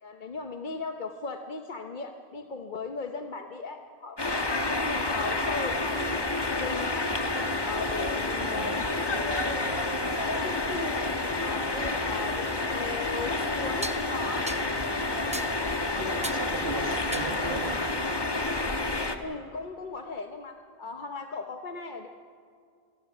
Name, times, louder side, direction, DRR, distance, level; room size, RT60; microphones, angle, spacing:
voice 1, 0.0-6.2 6.5-14.5 19.2-22.1, left 4 dB, 50° left, 5 dB, 1.0 m, -37 dB
sound 1, 4.2-19.2, left 2 dB, 25° left, 1.2 m, -29 dB
sound 2, 8.0-17.8, left 2 dB, 75° left, 1.5 m, -45 dB
voice 2, 8.4-8.7 16.0-18.0, right 2 dB, 60° right, 2 dB, 2.2 m, -36 dB
sound 3, 12.5-12.6 13.8-14.0 14.5-14.7 15.3-15.6 16.2-16.5 17.1-17.4, right 1 dB, 10° right, 0.5 m, -37 dB
27.5 x 18.5 x 6.1 m, 2.3 s
omnidirectional pair, 1.1 m